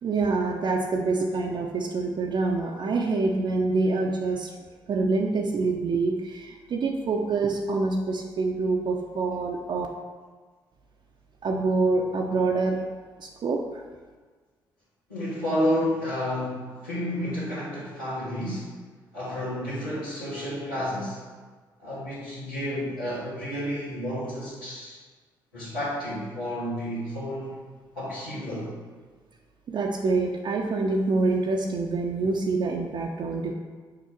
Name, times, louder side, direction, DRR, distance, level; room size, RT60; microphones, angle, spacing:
voice 1, 0.0-4.5 4.9-9.9 11.4-12.8 13.2-13.8 29.7-33.5, right 3 dB, 45° right, 0 dB, 0.7 m, -26 dB
voice 2, 15.1-18.8 19.1-21.2 21.8-25.0 25.5-27.6 27.9-28.7, equal, 90° left, -17 dB, 1.9 m, -30 dB
6.7 x 4.5 x 4.5 m, 1.4 s
figure-of-eight pair, 45°, 11 cm